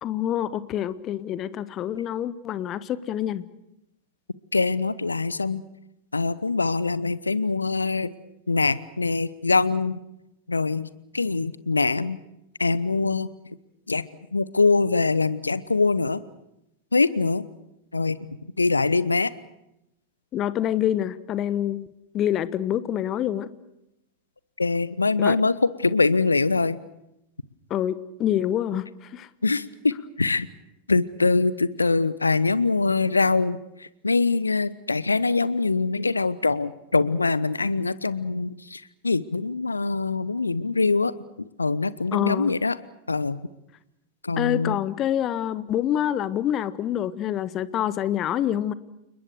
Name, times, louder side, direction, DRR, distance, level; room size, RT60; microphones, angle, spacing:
voice 1, 0.0-3.4 20.3-21.9 22.1-23.5 25.2-25.3 27.7-29.3 42.1-42.5 44.4-48.7, left 11 dB, 30° left, 16 dB, 1.2 m, -26 dB
voice 2, 4.5-5.6 6.1-8.1 8.5-10.0 10.5-10.9 11.1-12.2 12.6-13.3 13.9-16.2 16.9-17.5 17.9-18.2 18.6-19.3 24.6-26.8 29.4-29.9 30.2-30.5 30.9-41.1 41.4-42.8 43.1-43.4 44.2-44.8, left 3 dB, 80° left, 18 dB, 1.0 m, -23 dB
29.5 x 20.5 x 6.6 m, 0.85 s
figure-of-eight pair, 90°, 0 cm